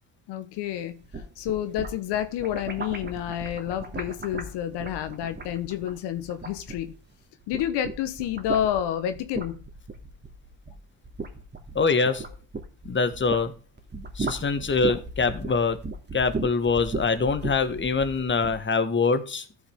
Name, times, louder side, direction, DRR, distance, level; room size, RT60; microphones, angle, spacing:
voice 1, 0.3-1.0 1.4-6.9 7.5-9.6, left 11 dB, 70° left, 1.2 m, -29 dB
sound 1, 0.9-7.1 7.4-13.5 13.8-18.6, right 3 dB, 25° right, 2.7 m, -36 dB
voice 2, 11.7-12.3 12.8-13.5 14.1-15.8 16.1-19.5, left 4 dB, 25° left, 1.6 m, -24 dB
14.5 x 6.1 x 3.6 m
hypercardioid pair, 65°, 43 cm